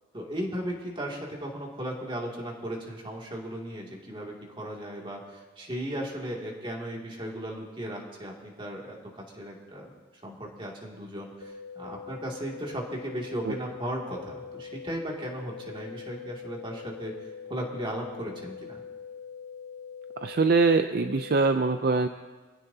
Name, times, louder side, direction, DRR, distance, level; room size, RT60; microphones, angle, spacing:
voice 1, 0.1-9.9 10.2-17.1 17.5-18.8, right 1 dB, 25° right, -2 dB, 2.4 m, -36 dB
sound 1, 11.4-21.4, left 6 dB, 70° left, 1.0 m, -43 dB
voice 2, 20.2-22.1, right 4 dB, 50° right, 8 dB, 0.5 m, -23 dB
24.5 x 16.0 x 2.8 m, 1.3 s
head